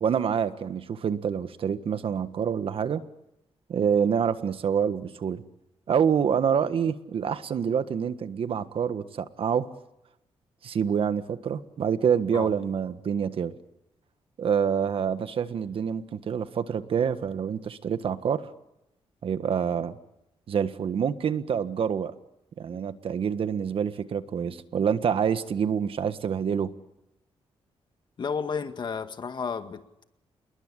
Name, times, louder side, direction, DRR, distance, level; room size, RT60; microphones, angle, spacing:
voice 1, 0.0-3.0 3.7-5.4 5.9-9.7 10.6-13.5 14.4-18.4 19.2-20.0 20.5-22.1 22.6-26.7, right 7 dB, 65° right, 1.5 m, -27 dB
voice 2, 28.2-30.0, left 5 dB, 50° left, 1.9 m, -32 dB
27.5 x 21.5 x 9.9 m
cardioid pair, 115°, 10 cm